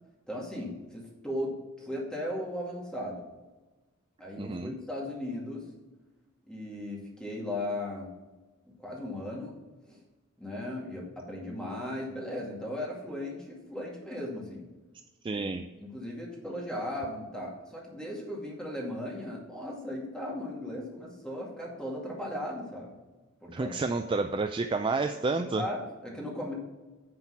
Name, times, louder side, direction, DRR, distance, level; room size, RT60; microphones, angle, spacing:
voice 1, 0.3-3.3 4.2-5.7 6.5-8.1 8.6-9.6 9.9-10.0 10.4-14.7 15.3-23.0 23.4-23.7 25.4-26.5, left 1 dB, 5° left, -3 dB, 2.2 m, -37 dB
voice 2, 4.4-4.7 15.2-15.6 23.5-25.6, right 3 dB, 25° right, 7 dB, 0.3 m, -30 dB
9.8 x 4.5 x 5.7 m, 1.2 s
head